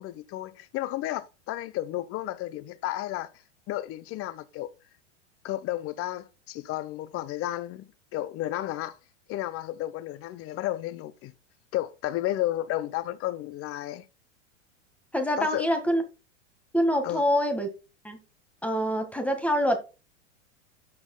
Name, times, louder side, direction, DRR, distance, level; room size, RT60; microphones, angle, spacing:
voice 1, 0.0-3.3 3.7-4.7 5.4-7.8 8.1-9.0 9.3-11.3 11.7-14.0 15.4-15.6 17.0-17.2, left 14 dB, 40° left, 0.8 m, -32 dB
voice 2, 15.1-16.0 16.7-17.7 18.0-18.2 18.6-19.8, equal, 5° left, 1.6 m, -25 dB
12.5 x 6.1 x 2.2 m
hypercardioid pair, 110°, 37 cm